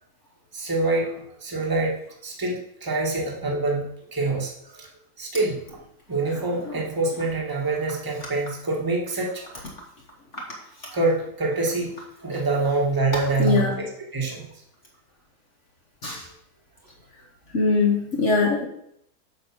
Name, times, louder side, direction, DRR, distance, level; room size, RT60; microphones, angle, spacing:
voice 1, 0.5-1.1 1.4-4.9 5.2-5.6 6.1-9.5 10.9-11.9 12.2-13.9 14.1-14.5, right 3 dB, 15° right, -1 dB, 1.4 m, -25 dB
voice 2, 13.4-13.7 16.0-16.2 17.5-18.6, left 4 dB, 50° left, -1 dB, 1.3 m, -21 dB
7.9 x 5.0 x 5.9 m, 0.73 s
omnidirectional pair, 1.8 m